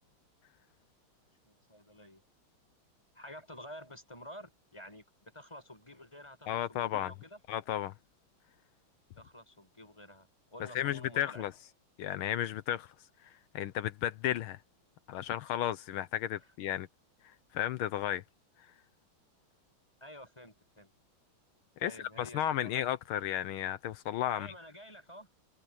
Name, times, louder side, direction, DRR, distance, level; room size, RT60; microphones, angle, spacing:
voice 1, 1.4-2.2 3.1-5.0 5.3-7.4 9.2-11.4 20.0-20.9 21.8-22.7 24.3-25.3, equal, 15° left, 5.9 m, -50 dB
voice 2, 6.5-7.1 7.5-7.9 10.8-11.5 12.0-12.9 13.2-14.6 15.1-16.9 17.5-18.2 21.8-21.9 22.2-24.5, left 12 dB, 80° left, 1.6 m, -33 dB
omnidirectional pair, 2.3 m